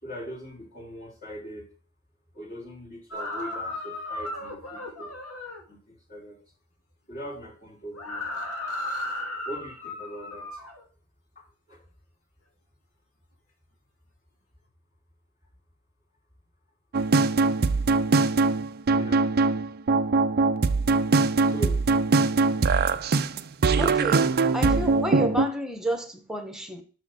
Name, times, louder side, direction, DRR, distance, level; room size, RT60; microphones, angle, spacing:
voice 1, 0.0-1.7 2.3-5.1 5.7-6.4 7.1-8.3 9.4-10.6 11.4-11.8 18.9-19.2 21.4-21.8, equal, 35° left, 3.8 m, -40 dB
sound 1, 3.1-5.6 7.9-10.8, left 1 dB, 75° left, 2.3 m, -35 dB
sound 2, 16.9-25.5, right 3 dB, 45° right, 0.5 m, -22 dB
voice 2, 23.8-26.8, equal, ahead, 1.2 m, -31 dB
6.4 x 6.4 x 6.2 m
head